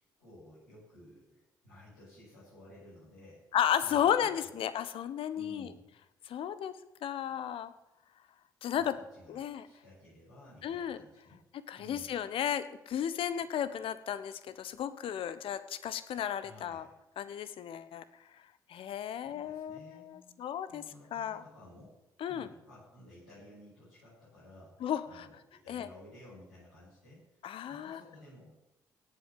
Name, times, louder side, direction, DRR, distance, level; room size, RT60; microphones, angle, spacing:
voice 1, 0.2-4.1 4.4-4.6 5.3-5.8 8.7-11.4 11.7-12.1 16.3-16.9 19.1-20.4 20.7-22.0 22.3-27.4 27.7-28.5, left 1 dB, 85° left, -11 dB, 7.8 m, -55 dB
voice 2, 3.5-5.7 6.3-6.7 7.0-7.7 8.6-9.0 9.3-9.7 10.6-11.0 11.7-16.8 17.2-18.0 18.7-20.8 21.1-21.4 22.2-22.5 24.8-25.3 25.7-25.9 27.4-28.0, left 9 dB, 60° left, 13 dB, 1.1 m, -34 dB
17.5 x 8.3 x 7.7 m, 0.94 s
hypercardioid pair, 40°, 10 cm